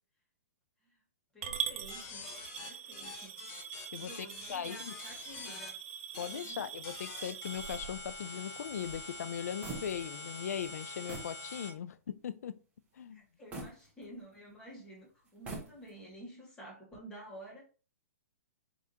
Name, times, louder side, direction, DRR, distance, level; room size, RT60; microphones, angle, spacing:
voice 1, 1.3-2.2 2.6-3.3 4.0-5.7 6.2-6.7 13.1-17.6, right 1 dB, 10° left, 1.7 m, -51 dB
Coin (dropping) / Glass, 1.4-7.8, right 8 dB, 50° right, 0.7 m, -42 dB
sound 1, 1.9-5.7 6.1-6.5 6.8-11.7, left 3 dB, 25° left, 1.0 m, -45 dB
voice 2, 3.9-4.9 6.2-12.6 13.0-13.2, left 8 dB, 75° left, 0.4 m, -39 dB
sound 2, 7.5-10.3 10.6-10.7 11.1-11.4 11.9-12.0 13.5-14.5 15.3-16.1, right 3 dB, 15° right, 1.1 m, -46 dB
4.8 x 3.6 x 2.8 m
hypercardioid pair, 155°, 9 cm